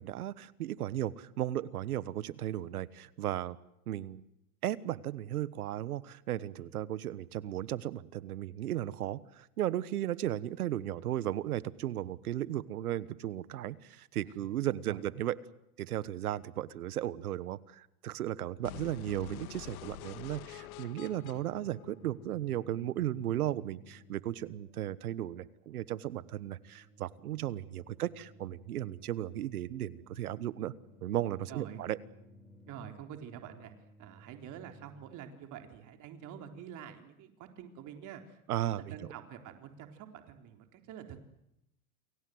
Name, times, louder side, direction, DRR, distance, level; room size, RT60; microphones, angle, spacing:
voice 1, 0.0-3.6 3.9-4.2 4.6-15.4 15.8-30.7 31.0-32.0 38.5-39.0, right 12 dB, 85° right, 18 dB, 1.4 m, -35 dB
voice 2, 14.4-15.0 31.5-31.8 32.7-33.7 34.0-41.3, right 9 dB, 45° right, 5 dB, 3.9 m, -47 dB
sound 1, 18.6-22.6, left 15 dB, 70° left, 1.7 m, -47 dB
sound 2, 18.9-35.1, equal, ahead, 6.3 m, -59 dB
29.5 x 21.5 x 7.9 m, 0.84 s
hypercardioid pair, 115°, 43 cm